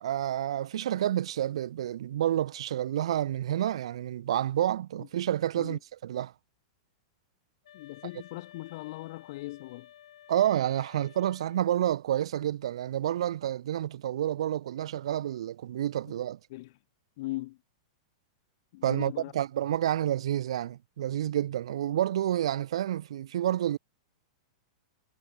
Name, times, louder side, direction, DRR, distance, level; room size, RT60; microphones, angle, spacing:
voice 1, 0.0-6.3 10.3-16.4 18.8-23.8, right 11 dB, 65° right, 0.3 m, -29 dB
sound 1, 7.6-11.8, left 11 dB, 65° left, 3.3 m, -54 dB
voice 2, 7.7-9.9 16.5-16.7 17.2-17.6 18.7-19.3, left 19 dB, 40° left, 0.7 m, -39 dB
supercardioid pair, 180°, 3 cm